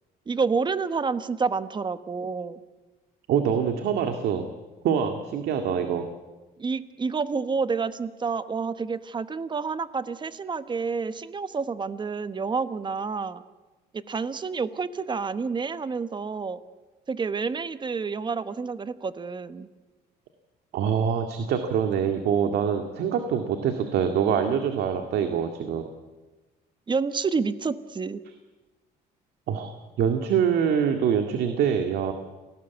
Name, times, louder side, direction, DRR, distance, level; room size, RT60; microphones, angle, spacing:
voice 1, 0.3-2.6 6.6-13.4 14.1-16.6 17.1-19.7 26.9-28.2, right 5 dB, 25° right, 12 dB, 1.2 m, -29 dB
voice 2, 3.3-4.5 4.8-6.1 20.7-25.9 29.5-32.1, right 7 dB, 75° right, 6 dB, 2.1 m, -25 dB
28.5 x 19.0 x 8.3 m, 1.2 s
cardioid pair, 110°, 17 cm